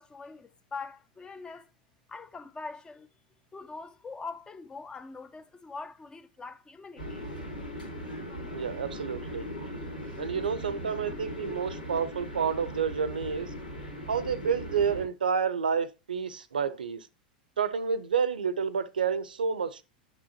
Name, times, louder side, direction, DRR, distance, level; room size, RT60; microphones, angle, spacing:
voice 1, 0.0-1.7 2.1-3.1 3.5-7.2, left 4 dB, 15° left, 0.8 m, -43 dB
sound 1, 7.0-15.0, equal, 90° left, 3.3 m, -39 dB
voice 2, 8.5-9.5 10.2-13.5 14.1-17.1 17.6-19.8, right 6 dB, 85° right, 0.7 m, -29 dB
9.0 x 6.2 x 2.8 m
hypercardioid pair, 90°, 5 cm